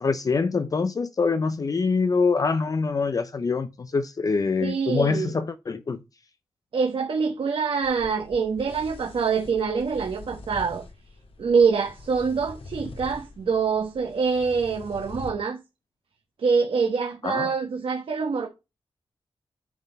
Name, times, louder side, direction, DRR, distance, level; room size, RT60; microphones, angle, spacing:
voice 1, 0.0-6.0 17.2-17.5, left 4 dB, 40° left, 0.5 m, -25 dB
voice 2, 4.6-5.3 6.7-10.8 11.4-15.6 16.4-18.5, right 5 dB, 70° right, 1.3 m, -25 dB
sound 1, 7.8-15.3, left 3 dB, 75° left, 1.7 m, -44 dB
9.2 x 4.0 x 5.2 m
wide cardioid pair, 125°, 10 cm